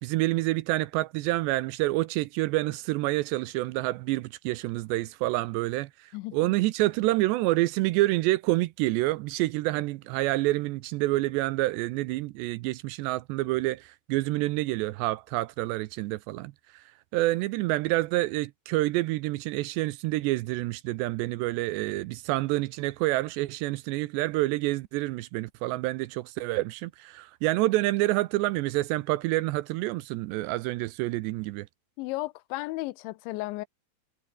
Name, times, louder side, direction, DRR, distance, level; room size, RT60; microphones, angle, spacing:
voice 1, 0.0-16.8 17.1-31.7, right 19 dB, 80° right, 2.7 m, -28 dB
voice 2, 32.0-33.7, left 20 dB, 85° left, 3.0 m, -34 dB
omnidirectional pair, 5.3 m